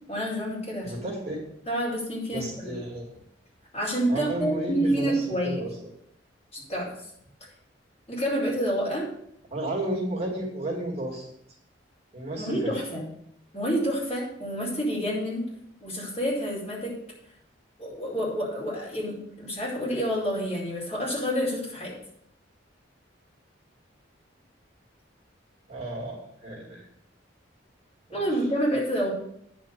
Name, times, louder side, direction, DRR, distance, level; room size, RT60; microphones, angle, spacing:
voice 1, 0.1-0.9 1.7-2.8 3.7-5.6 6.5-6.9 8.1-9.1 12.4-13.0 13.5-15.4 15.8-16.9 17.8-21.9 28.1-29.1, equal, 35° left, -5 dB, 4.7 m, -28 dB
voice 2, 0.8-1.5 2.3-3.2 4.1-5.7 9.5-11.3 12.1-12.7 25.7-26.9, right 1 dB, 35° right, -3 dB, 2.7 m, -32 dB
10.0 x 5.2 x 6.9 m, 0.72 s
head